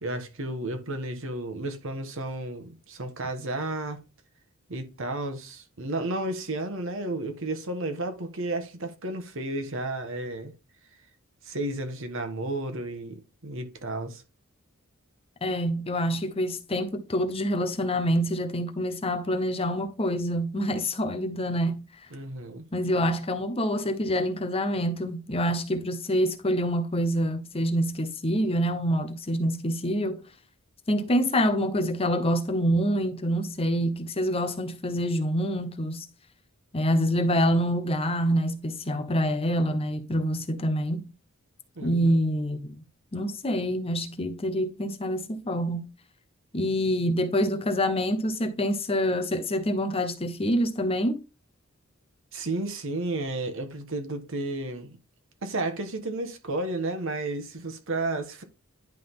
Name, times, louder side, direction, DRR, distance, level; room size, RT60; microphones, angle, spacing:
voice 1, 0.0-4.0 4.7-10.5 11.4-14.2 22.1-22.7 41.8-42.1 52.3-55.0 55.4-58.4, right 2 dB, 65° right, 1.4 m, -32 dB
voice 2, 15.4-21.8 22.7-30.2 30.9-36.1 36.7-41.1 41.8-42.8 43.1-45.9 46.5-51.2, equal, 25° left, 0.8 m, -26 dB
10.5 x 3.8 x 3.7 m
head